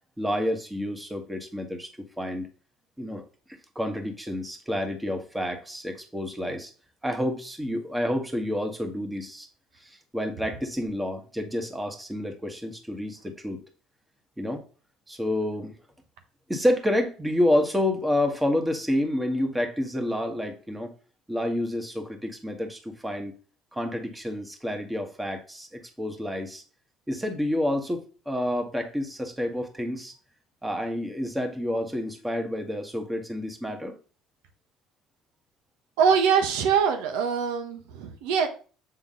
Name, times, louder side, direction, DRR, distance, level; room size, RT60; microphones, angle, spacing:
voice 1, 0.2-2.5 3.0-3.2 3.7-6.7 7.0-9.5 9.8-13.6 14.4-14.6 15.1-15.7 16.5-20.9 21.3-23.3 23.7-26.6 27.1-30.1 30.6-34.0, left 1 dB, 10° right, 4 dB, 1.6 m, -29 dB
voice 2, 36.0-38.5, right 6 dB, 85° right, 6 dB, 1.0 m, -23 dB
7.3 x 3.8 x 3.8 m, 0.37 s
supercardioid pair, 80°, 0 cm